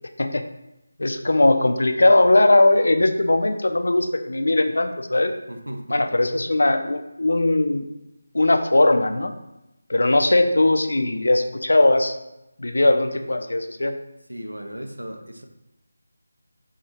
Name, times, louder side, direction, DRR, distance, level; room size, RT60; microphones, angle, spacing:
voice 1, 1.0-5.3 5.9-7.9 8.3-9.3 9.9-12.1 12.6-13.9, left 2 dB, 65° left, 7 dB, 0.4 m, -19 dB
voice 2, 5.5-6.0 14.3-15.5, equal, 90° right, 4 dB, 0.5 m, -35 dB
4.4 x 2.3 x 2.8 m, 0.92 s
figure-of-eight pair, 160°, 0 cm